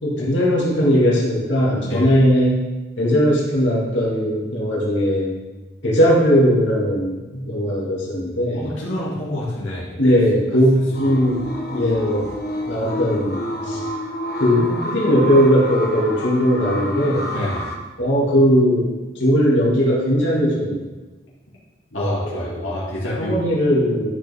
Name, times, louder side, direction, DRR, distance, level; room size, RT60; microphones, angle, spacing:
voice 1, 0.0-2.6 3.0-5.3 5.8-8.7 10.0-11.4 11.7-12.3 12.6-13.8 14.4-17.3 18.0-18.9 19.1-20.9 21.9-22.7 23.2-24.1, equal, 70° left, -4 dB, 2.5 m, -18 dB
voice 2, 8.5-9.9 17.3-17.7 21.9-23.4, left 1 dB, 90° left, -7 dB, 2.2 m, -27 dB
sound 1, 10.9-17.7, left 1 dB, 50° left, 1.1 m, -29 dB
11.5 x 6.7 x 3.6 m, 1.2 s
head